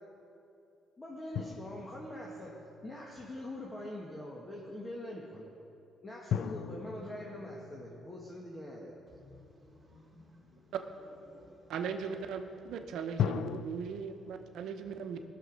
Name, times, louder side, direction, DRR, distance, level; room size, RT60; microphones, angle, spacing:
voice 1, 1.0-2.6 2.8-5.5 6.0-8.9, left 1 dB, 20° left, -3 dB, 1.6 m, -43 dB
sound 1, 1.3-3.3 6.3-9.6 13.2-13.6, left 8 dB, 75° left, 0.4 m, -38 dB
voice 2, 9.1-10.8 11.3-11.7, left 1 dB, 10° right, -4 dB, 3.1 m, -58 dB
voice 3, 11.7-15.2, right 6 dB, 80° right, 7 dB, 0.8 m, -38 dB
18.0 x 6.7 x 5.2 m, 2.7 s
cardioid pair, 90°, 0 cm